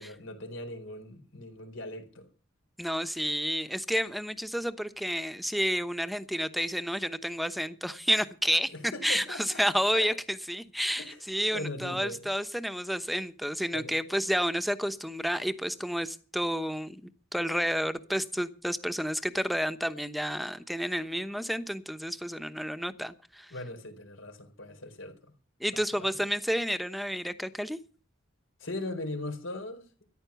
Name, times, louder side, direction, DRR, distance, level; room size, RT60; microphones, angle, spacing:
voice 1, 0.0-2.3 8.7-9.6 9.9-10.2 11.0-11.2 11.5-12.3 13.7-14.0 23.5-25.3 25.7-26.2 28.6-29.9, left 2 dB, 85° left, 4.3 m, -39 dB
voice 2, 2.8-23.5 25.6-27.8, equal, ahead, 0.9 m, -30 dB
14.0 x 11.0 x 6.9 m
head